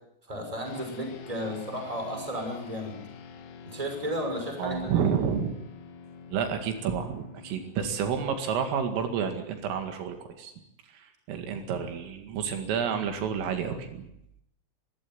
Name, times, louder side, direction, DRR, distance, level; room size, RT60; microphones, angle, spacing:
voice 1, 0.3-3.0 3.7-5.1, equal, 5° right, 3 dB, 5.6 m, -33 dB
sound 1, 0.7-10.3, left 5 dB, 85° left, 4.7 m, -48 dB
voice 2, 4.6-5.5 6.3-10.5 10.9-14.1, right 7 dB, 80° right, 6 dB, 4.7 m, -30 dB
24.5 x 15.5 x 9.4 m, 0.77 s
omnidirectional pair, 5.8 m